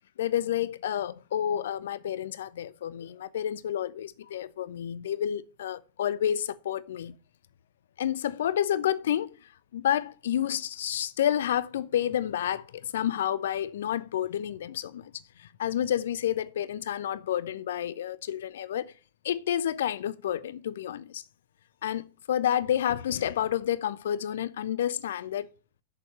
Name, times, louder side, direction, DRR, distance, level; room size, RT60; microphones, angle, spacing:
voice 1, 0.2-7.2 8.0-18.9 19.2-21.2 21.8-25.5, left 10 dB, 60° left, 0.5 m, -30 dB
6.6 x 5.2 x 6.5 m
figure-of-eight pair, 90°, 0 cm